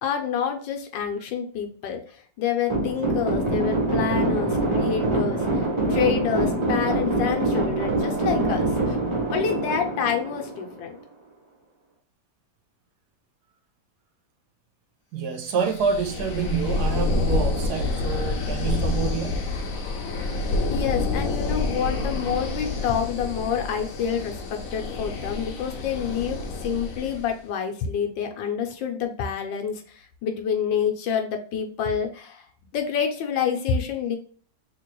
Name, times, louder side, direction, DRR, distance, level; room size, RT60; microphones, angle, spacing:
voice 1, 0.0-9.0 9.3-11.0 20.7-32.4 32.7-34.2, left 7 dB, 80° left, 1.4 m, -28 dB
sound 1, 2.7-11.0, right 2 dB, 40° right, 0.4 m, -24 dB
voice 2, 15.1-19.5, right 6 dB, 70° right, 1.0 m, -27 dB
sound 2, 15.5-27.3, left 2 dB, 60° left, 1.0 m, -28 dB
3.7 x 2.9 x 3.0 m
omnidirectional pair, 2.0 m